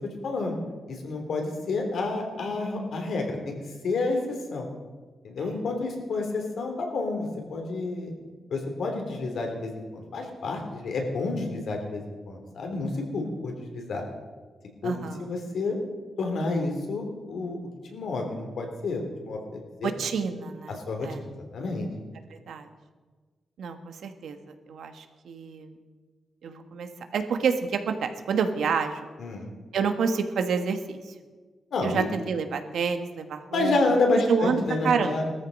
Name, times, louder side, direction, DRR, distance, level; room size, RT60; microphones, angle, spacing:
voice 1, 0.2-0.6 0.9-3.5 3.8-4.2 4.5-4.7 5.2-8.1 8.5-14.0 14.8-14.9 15.2-15.8 16.2-17.6 17.9-19.9 20.7-21.9 29.2-29.5 31.7-32.0 33.5-35.3, left 3 dB, 70° left, 3 dB, 3.2 m, -29 dB
voice 2, 14.8-15.3 19.8-21.2 22.3-22.7 23.6-24.4 24.7-25.8 26.4-29.1 29.7-31.1 31.8-33.8 34.3-35.1, right 5 dB, 85° right, 7 dB, 1.4 m, -28 dB
19.0 x 13.5 x 5.4 m, 1.4 s
wide cardioid pair, 175°, 0 cm